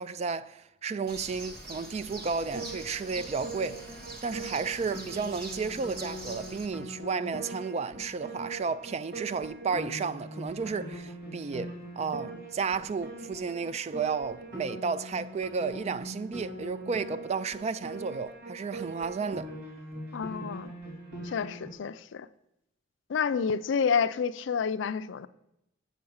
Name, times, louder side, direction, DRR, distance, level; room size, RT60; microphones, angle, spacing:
voice 1, 0.0-3.9 4.2-19.5, right 5 dB, 35° right, 0.3 m, -33 dB
Bird, 1.1-6.7, right 2 dB, 55° right, 1.2 m, -44 dB
Piano, 2.5-21.7, right 1 dB, 70° right, 2.6 m, -42 dB
voice 2, 20.1-20.7 21.2-22.3 23.1-25.3, left 6 dB, 70° left, 0.4 m, -29 dB
7.9 x 5.9 x 6.3 m
head